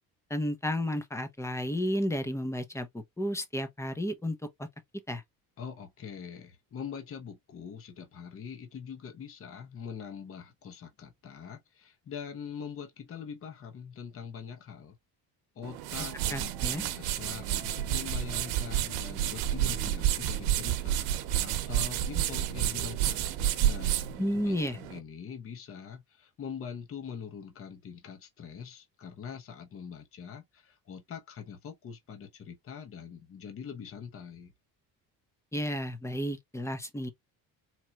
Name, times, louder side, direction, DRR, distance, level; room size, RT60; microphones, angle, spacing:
voice 1, 0.3-4.4 5.1-5.2 16.3-16.8 24.2-24.8 35.5-37.1, equal, 10° left, 0.7 m, -32 dB
voice 2, 5.6-15.0 15.5-21.1 21.4-23.2 23.6-34.5, left 7 dB, 35° left, 1.1 m, -43 dB
sound 1, 15.6-25.0, right 12 dB, 90° right, 0.9 m, -30 dB
4.3 x 2.9 x 2.3 m
cardioid pair, 140°, 36 cm